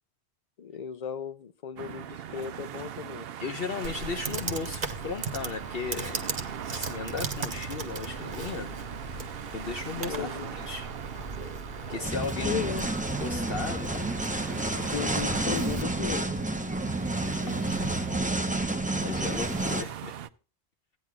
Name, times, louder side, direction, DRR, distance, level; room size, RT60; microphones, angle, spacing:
voice 1, 0.6-3.3 10.1-10.5 12.5-12.9 14.9-16.4, left 8 dB, 45° left, 0.7 m, -36 dB
sound 1, 1.8-20.3, right 10 dB, 65° right, 0.8 m, -41 dB
voice 2, 3.4-6.3 6.7-8.8 9.1-10.9 11.9-12.7 13.2-14.9 17.2-18.0 19.0-20.2, left 5 dB, 60° left, 1.2 m, -36 dB
Computer keyboard, 3.8-15.8, right 4 dB, 50° right, 1.3 m, -38 dB
sound 2, 12.0-19.8, right 2 dB, 10° right, 0.7 m, -30 dB
16.5 x 9.5 x 2.3 m
omnidirectional pair, 1.1 m